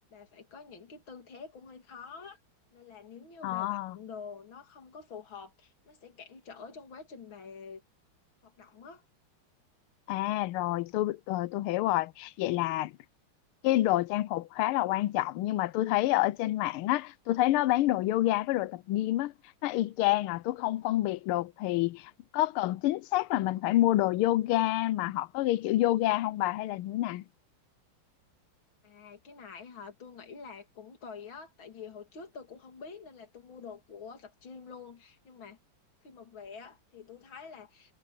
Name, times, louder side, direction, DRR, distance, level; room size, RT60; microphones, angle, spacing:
voice 1, 0.0-2.4 2.7-7.8 8.4-9.0 28.8-35.6 36.0-38.0, left 5 dB, 65° left, 3.6 m, -47 dB
voice 2, 3.4-4.0 10.1-12.9 13.6-19.3 19.6-27.2, left 15 dB, 85° left, 1.5 m, -28 dB
omnidirectional pair, 2.3 m